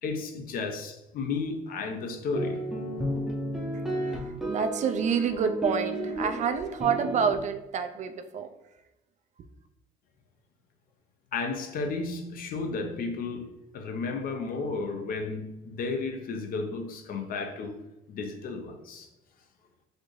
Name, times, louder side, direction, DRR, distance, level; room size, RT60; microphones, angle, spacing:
voice 1, 0.0-2.7 11.3-17.8 18.1-19.1, left 4 dB, 60° left, 0.6 m, -33 dB
sound 1, 2.3-7.4, equal, ahead, 0.6 m, -32 dB
voice 2, 4.1-8.5, right 6 dB, 45° right, 0.4 m, -28 dB
4.2 x 2.5 x 3.1 m
cardioid pair, 110°, 17 cm